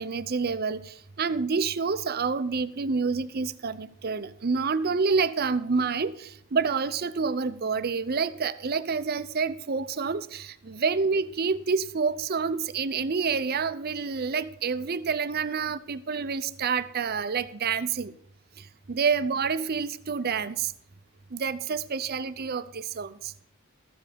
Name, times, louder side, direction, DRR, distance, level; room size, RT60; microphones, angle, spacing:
voice 1, 0.0-18.1 18.6-20.7 21.3-23.3, right 5 dB, 45° right, 14 dB, 0.6 m, -28 dB
14.0 x 7.6 x 5.1 m, 0.69 s
head